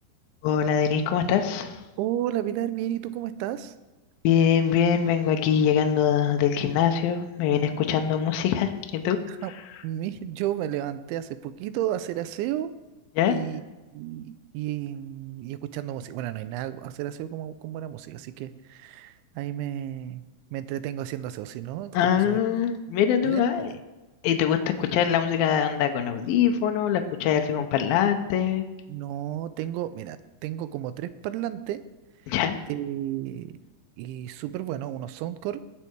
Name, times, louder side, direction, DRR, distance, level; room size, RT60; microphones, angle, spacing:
voice 1, 0.4-1.8 4.2-9.2 13.2-13.4 21.9-23.7 24.2-28.7 32.3-32.6, left 8 dB, 75° left, 6 dB, 2.3 m, -23 dB
voice 2, 2.0-3.7 9.3-9.5 9.8-12.7 13.3-13.6 13.9-20.2 20.5-22.4 23.2-23.7 28.9-30.2 30.4-31.8 32.7-33.5 34.0-35.6, right 12 dB, 90° right, 13 dB, 3.0 m, -32 dB
19.0 x 7.1 x 4.6 m, 1.1 s
omnidirectional pair, 5.2 m